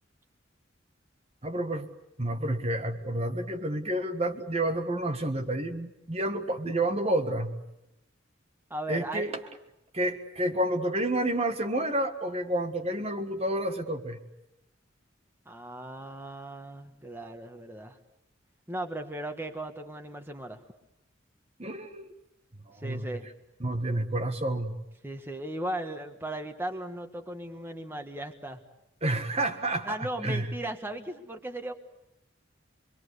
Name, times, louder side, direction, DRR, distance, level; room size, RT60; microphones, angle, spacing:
voice 1, 1.4-1.9 2.2-7.5 8.9-9.4 9.9-14.2 21.6-22.1 22.7-23.1 23.6-24.7 29.0-30.5, right 1 dB, 35° right, 6 dB, 1.7 m, -29 dB
voice 2, 8.7-9.5 15.4-18.0 18.7-20.6 22.7-23.3 25.0-28.6 29.8-31.7, right 1 dB, 10° right, 4 dB, 1.7 m, -37 dB
27.0 x 23.0 x 8.3 m, 0.87 s
head